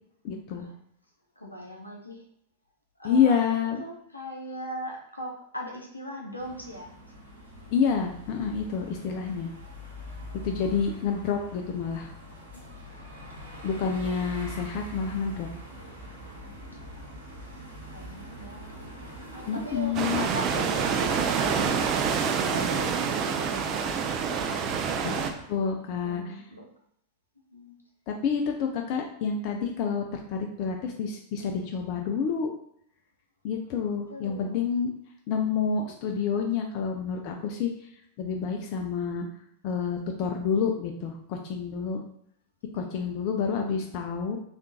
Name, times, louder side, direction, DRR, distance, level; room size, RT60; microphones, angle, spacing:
voice 1, 0.2-0.7 3.0-3.8 7.7-9.5 10.4-12.1 13.6-15.5 19.5-20.3 25.0-25.1 25.5-26.3 28.1-32.5 33.4-34.9 35.3-37.7 38.2-39.3 39.6-42.0 42.7-44.4, left 6 dB, 45° left, 3 dB, 0.3 m, -28 dB
voice 2, 1.4-2.3 3.0-3.4 3.8-7.0 12.5-12.9 13.3-13.6 14.0-14.2 17.9-18.7 19.3-22.1 22.4-24.7 25.6-25.7 26.0-26.6 27.5-27.8 34.1-34.7 42.8-43.1, equal, 85° left, 0 dB, 0.6 m, -40 dB
sound 1, 6.4-25.5, equal, 80° right, 0.9 m, -44 dB
sound 2, 19.9-25.3, right 6 dB, 35° right, 0.3 m, -27 dB
3.5 x 2.4 x 2.7 m, 0.69 s
figure-of-eight pair, 90°, 0 cm